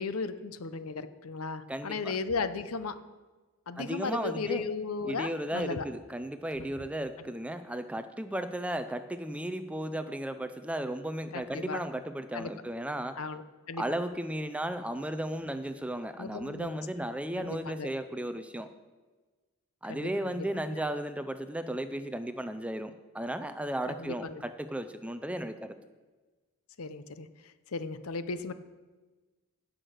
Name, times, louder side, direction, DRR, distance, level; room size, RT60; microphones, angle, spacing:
voice 1, 0.0-3.0 3.7-5.9 6.6-6.7 11.3-11.8 12.3-12.5 13.2-13.4 13.7-13.8 16.2-16.8 17.4-17.9 19.9-20.5 20.7-20.8 23.9-24.4 26.8-28.5, left 4 dB, 85° left, 12 dB, 0.7 m, -36 dB
voice 2, 1.7-2.1 3.8-4.6 5.0-13.2 13.8-18.7 19.8-25.8, right 1 dB, 5° right, 10 dB, 0.4 m, -35 dB
15.5 x 6.2 x 6.5 m, 1.3 s
head